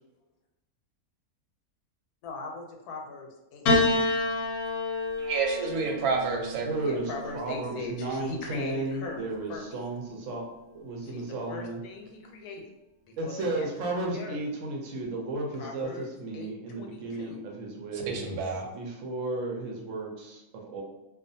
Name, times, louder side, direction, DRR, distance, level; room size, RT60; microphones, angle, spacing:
voice 1, 2.2-3.6 6.8-9.7 11.0-11.2 11.5-12.7 13.1-14.4 15.5-16.1 16.3-17.4, left 3 dB, 90° left, 2 dB, 1.1 m, -40 dB
Piano, 3.7-8.1 9.2-9.9, left 2 dB, 70° left, 0.9 m, -29 dB
voice 2, 5.2-6.7 17.9-18.7, right 4 dB, 85° right, 1 dB, 1.1 m, -29 dB
voice 3, 6.6-10.5 10.7-11.8 13.2-18.2 18.7-20.8, right 2 dB, 70° right, 0 dB, 0.8 m, -34 dB
2.4 x 2.3 x 2.6 m, 0.95 s
omnidirectional pair, 1.6 m